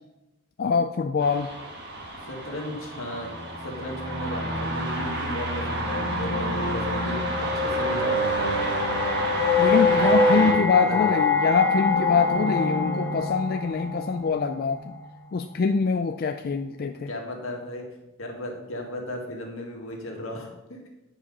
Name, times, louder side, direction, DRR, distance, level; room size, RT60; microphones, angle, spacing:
voice 1, 0.6-1.5 9.6-14.9 15.3-17.1, left 5 dB, 45° left, 6 dB, 0.3 m, -24 dB
sound 1, 1.2-10.5, left 1 dB, 50° right, 1.6 m, -26 dB
voice 2, 2.2-8.6 10.3-11.3 17.1-17.9 18.2-20.9, left 1 dB, 80° left, 0 dB, 1.9 m, -35 dB
sound 2, 5.4-13.3, left 2 dB, 65° left, 1.6 m, -34 dB
sound 3, 8.0-15.1, left 5 dB, 10° left, 0.9 m, -27 dB
9.9 x 4.9 x 5.4 m, 1.0 s
head